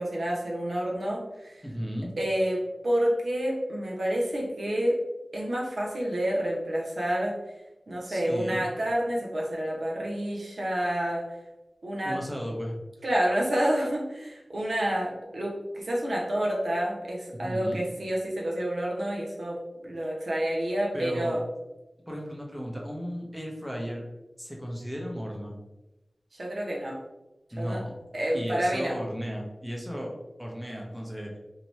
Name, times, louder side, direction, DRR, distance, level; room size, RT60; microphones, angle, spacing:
voice 1, 0.0-1.6 2.2-5.0 5.3-7.4 7.9-11.3 11.8-12.2 13.0-21.4 26.3-27.0 27.6-27.8 28.1-29.0, right 1 dB, 75° right, -3 dB, 0.6 m, -29 dB
voice 2, 1.6-2.1 8.1-8.6 12.0-12.8 17.3-17.8 20.0-20.1 20.9-21.4 22.1-24.0 24.4-25.6 27.5-28.0 28.3-30.1 30.4-31.4, equal, 5° right, -1 dB, 0.6 m, -35 dB
2.7 x 2.1 x 3.0 m, 1.0 s
wide cardioid pair, 55°, 0 cm